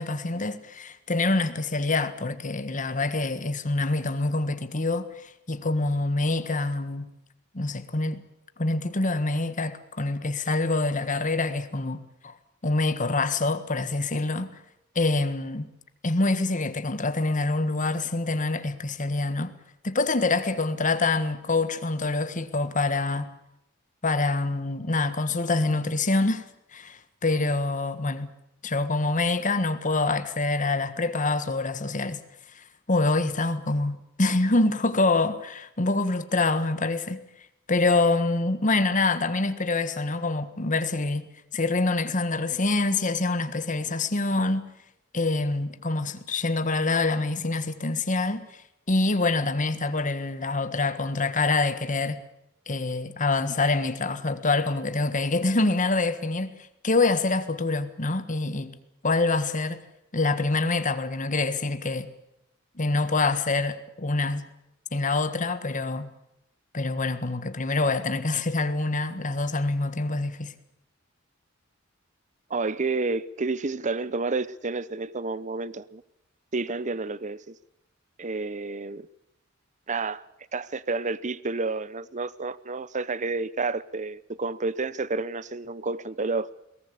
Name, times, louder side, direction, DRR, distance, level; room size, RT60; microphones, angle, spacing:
voice 1, 0.0-7.1 7.5-8.2 8.6-12.3 12.6-14.5 14.9-15.7 16.0-19.5 19.8-23.3 24.0-26.4 26.7-28.3 28.6-32.2 32.5-37.2 37.7-44.7 45.1-48.5 48.9-52.2 52.7-56.6 56.8-58.7 59.0-59.8 60.1-62.1 62.8-64.5 64.9-66.1 66.7-70.5, left 3 dB, 40° left, 1.5 m, -26 dB
voice 2, 72.5-76.0 76.5-77.6 78.2-79.1 79.9-80.2 80.5-86.6, right 3 dB, 35° right, 0.8 m, -30 dB
22.0 x 18.5 x 8.4 m
head